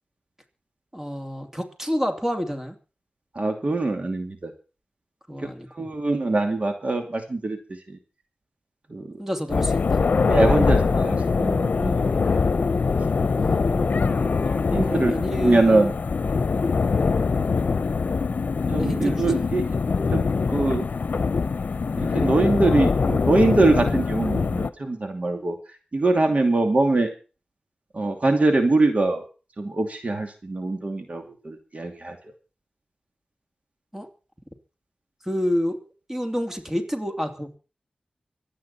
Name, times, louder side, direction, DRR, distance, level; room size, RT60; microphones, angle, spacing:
voice 1, 0.9-2.8 5.3-5.9 9.2-10.0 13.4-14.4 14.7-15.9 18.8-19.4 33.9-34.1 35.2-35.8 36.1-37.6, equal, 15° right, 5 dB, 2.8 m, -29 dB
voice 2, 3.4-4.5 5.4-5.5 5.8-7.6 7.9-8.0 8.9-9.1 10.3-12.4 14.5-15.1 15.4-15.9 18.7-19.6 20.1-20.9 22.0-25.6 25.9-27.1 27.9-29.2 29.6-32.2, right 2 dB, 50° right, 5 dB, 2.6 m, -23 dB
sound 1, 9.5-24.7, left 4 dB, 75° left, 0.8 m, -23 dB
25.0 x 9.2 x 4.3 m, 0.35 s
wide cardioid pair, 60°, 3 cm